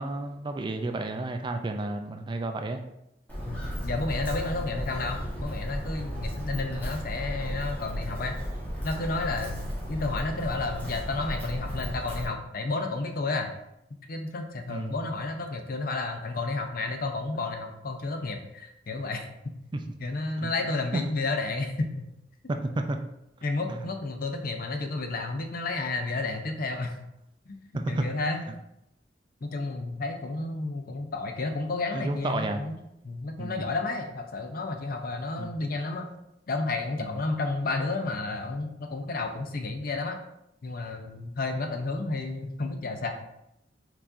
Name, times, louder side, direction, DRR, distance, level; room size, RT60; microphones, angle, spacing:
voice 1, 0.0-2.8 14.7-15.0 19.7-19.8 20.4-20.5 20.9-21.0 22.5-23.0 23.7-23.8 27.7-28.1 31.9-32.6 33.4-33.7 35.4-35.5 37.0-37.2, right 2 dB, 25° right, 6 dB, 0.3 m, -31 dB
Walk footsteps, 3.3-12.3, equal, 10° left, 1.3 m, -34 dB
voice 2, 3.5-8.4 8.8-13.6 14.1-19.3 20.0-22.1 23.4-26.9 27.5-28.4 29.4-32.7 33.0-36.1 36.5-40.2 40.6-43.1, left 3 dB, 55° left, 5 dB, 0.6 m, -31 dB
4.6 x 4.1 x 2.5 m, 0.83 s
head